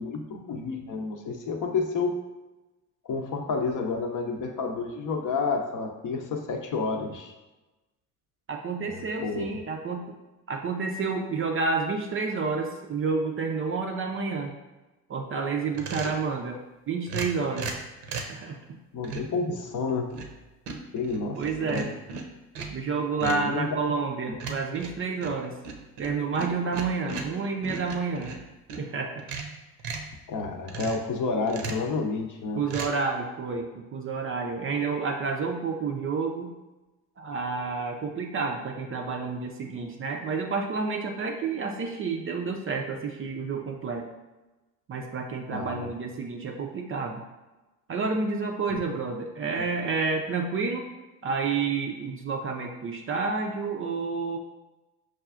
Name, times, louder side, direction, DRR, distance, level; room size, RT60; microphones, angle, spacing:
voice 1, 0.0-2.1 3.0-7.3 8.8-9.5 18.9-20.2 20.9-21.9 23.2-23.8 30.3-32.7 45.5-45.9 48.7-48.8, left 4 dB, 40° left, 3 dB, 0.7 m, -30 dB
voice 2, 8.5-10.1 10.5-14.5 15.1-16.6 16.9-17.7 18.3-18.6 21.4-21.9 22.7-25.6 26.0-28.3 28.8-29.2 32.6-36.5 37.2-44.1 44.9-47.2 47.9-50.9 51.2-54.4, right 4 dB, 30° right, 2 dB, 0.5 m, -29 dB
sound 1, 15.7-16.2 17.1-18.4 19.0-19.4 19.9-20.4 20.7-22.8 23.2-23.5 24.4-28.9 29.2-30.1 30.7-31.1 31.5-31.9 32.7-32.9, right 4 dB, 60° right, 0.7 m, -37 dB
6.1 x 2.4 x 2.4 m, 1.1 s
hypercardioid pair, 55°, 46 cm